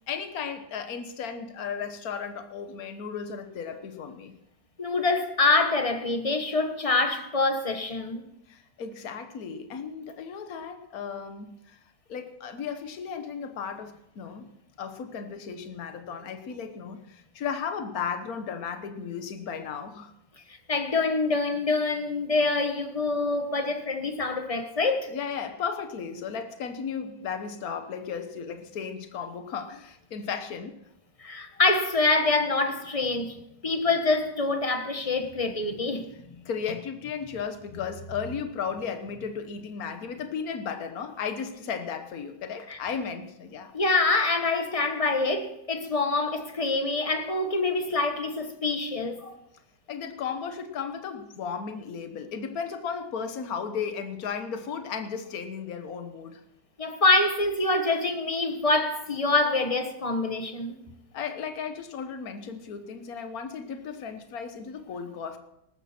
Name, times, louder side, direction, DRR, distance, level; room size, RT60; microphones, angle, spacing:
voice 1, 0.1-4.3 8.5-11.8 12.1-20.1 25.1-30.8 36.4-43.7 49.9-56.4 61.1-65.4, left 6 dB, 55° left, 1.6 m, -35 dB
voice 2, 4.8-8.2 20.7-25.1 31.2-33.4 33.6-36.4 42.7-42.8 43.7-49.4 56.8-60.7, left 3 dB, 20° left, 1.2 m, -25 dB
19.0 x 13.5 x 4.4 m
omnidirectional pair, 2.0 m